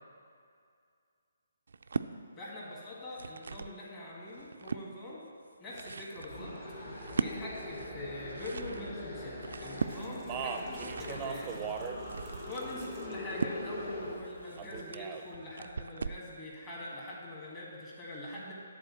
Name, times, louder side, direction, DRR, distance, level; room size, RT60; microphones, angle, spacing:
sound 1, 1.7-2.1 2.9-3.8 4.2-4.9 5.5-16.3, right 4 dB, 60° right, 0.3 m, -40 dB
voice 1, 2.4-5.2 5.6-6.5 7.2-11.5 12.5-18.5, left 1 dB, 20° left, -6 dB, 1.9 m, -43 dB
sound 2, 6.3-14.2, left 1 dB, 45° left, 1.9 m, -42 dB
Speech, 10.0-12.0 12.3-13.1 14.6-15.2, right 6 dB, 20° right, 0.6 m, -39 dB
10.5 x 4.1 x 7.0 m, 2.3 s
figure-of-eight pair, 140°, 0 cm